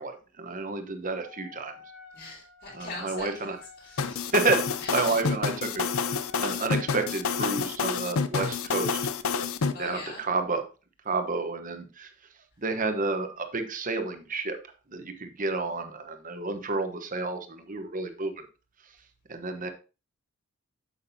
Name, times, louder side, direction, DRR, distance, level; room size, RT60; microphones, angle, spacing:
voice 1, 0.0-1.7 2.7-3.6 4.3-5.8 6.4-9.0 9.6-10.6 11.0-12.1 12.6-14.6 14.9-18.4 19.3-19.7, right 3 dB, 35° right, 6 dB, 1.0 m, -30 dB
Wind instrument woodwind instrument, 1.2-7.7, left 6 dB, 85° left, 2.7 m, -51 dB
voice 2, 2.1-3.5 3.8-4.3 4.8-5.2 9.7-10.2, left 3 dB, 45° left, -9 dB, 3.1 m, -41 dB
sound 1, 4.0-9.7, left 5 dB, 65° left, 0.5 m, -28 dB
8.3 x 7.4 x 2.7 m, 0.32 s
head